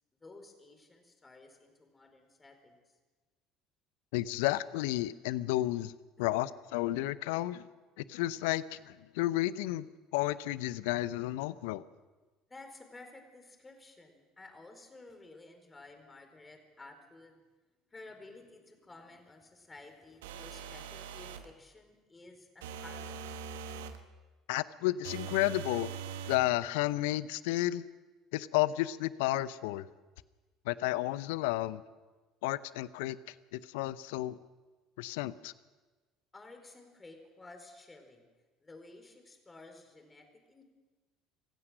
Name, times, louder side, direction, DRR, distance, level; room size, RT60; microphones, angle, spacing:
voice 1, 0.2-2.8 6.2-6.4 12.5-17.4 17.9-23.4 36.3-38.3 38.6-40.6, left 2 dB, 20° left, 5 dB, 4.6 m, -53 dB
voice 2, 4.1-5.9 6.2-7.7 8.0-11.8 24.5-25.9 26.3-27.9 28.3-29.9 30.6-31.8 32.4-34.4 35.0-35.5, left 16 dB, 70° left, 17 dB, 0.7 m, -32 dB
sound 1, 20.2-21.5 22.6-24.0 25.0-26.5, right 7 dB, 75° right, 1.3 m, -42 dB
26.5 x 15.5 x 6.4 m, 1.3 s
hypercardioid pair, 60°, 0 cm